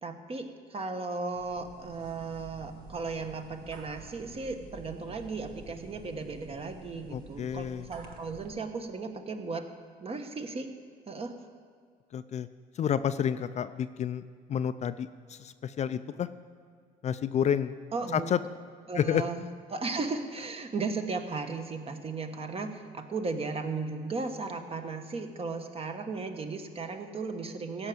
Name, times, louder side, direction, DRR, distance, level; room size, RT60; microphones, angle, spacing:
voice 1, 0.0-9.7 10.0-10.7 11.1-11.3 17.9-18.3 18.9-19.4 19.7-27.9, right 4 dB, 35° right, 6 dB, 1.2 m, -36 dB
sound 1, 1.3-8.6, right 4 dB, 65° right, 1.4 m, -49 dB
voice 2, 7.1-7.9 12.1-12.5 12.8-14.2 14.5-16.3 17.0-17.7 18.1-18.4 18.9-19.2, left 9 dB, 40° left, 12 dB, 0.4 m, -30 dB
16.0 x 5.9 x 7.8 m, 2.1 s
cardioid pair, 110°, 17 cm